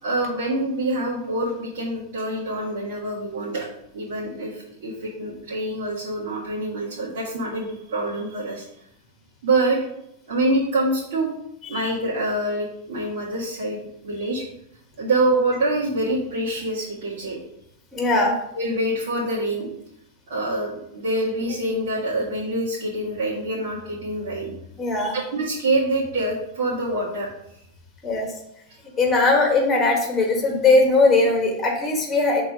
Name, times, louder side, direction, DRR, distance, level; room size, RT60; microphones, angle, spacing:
voice 1, 0.0-3.7 3.9-8.7 9.4-9.8 10.3-11.3 11.7-14.5 15.0-17.4 18.5-19.7 20.3-24.5 25.1-27.3, right 2 dB, 85° right, -7 dB, 1.8 m, -25 dB
voice 2, 17.9-18.3 24.8-25.2 28.0-28.3 29.0-32.4, left 3 dB, 15° left, 1 dB, 1.6 m, -19 dB
6.0 x 3.8 x 5.0 m, 0.77 s
supercardioid pair, 155°, 0 cm